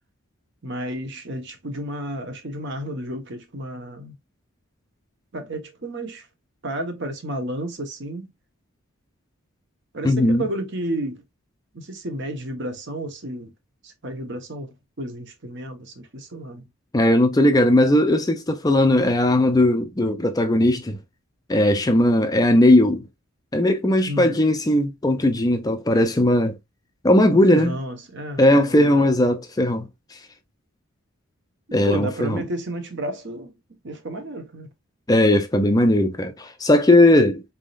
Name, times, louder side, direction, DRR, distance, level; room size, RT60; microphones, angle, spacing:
voice 1, 0.6-4.1 5.3-6.3 6.6-8.3 9.9-11.2 11.7-13.5 13.8-16.7 24.0-24.4 27.3-29.1 31.7-33.6 33.8-34.7, right 1 dB, 55° right, 1.1 m, -32 dB
voice 2, 10.0-10.4 16.9-21.0 21.5-23.0 23.5-26.6 27.0-27.7 28.4-29.9 31.7-32.4 35.1-37.4, left 1 dB, 15° left, 0.4 m, -18 dB
4.2 x 3.6 x 2.4 m
head